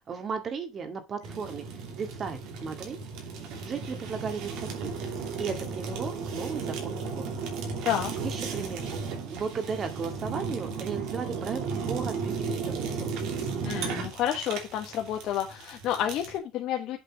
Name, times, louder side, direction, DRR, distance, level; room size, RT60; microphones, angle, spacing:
voice 1, 0.1-3.0 3.7-5.0 5.4-7.3 8.2-8.9 9.3-13.2, right 6 dB, 45° right, 2.0 m, -35 dB
Fire, 1.2-16.4, right 5 dB, 80° right, 2.8 m, -35 dB
voice 2, 13.6-17.0, left 11 dB, 70° left, 1.3 m, -30 dB
7.9 x 4.3 x 6.1 m
supercardioid pair, 95°, 0 cm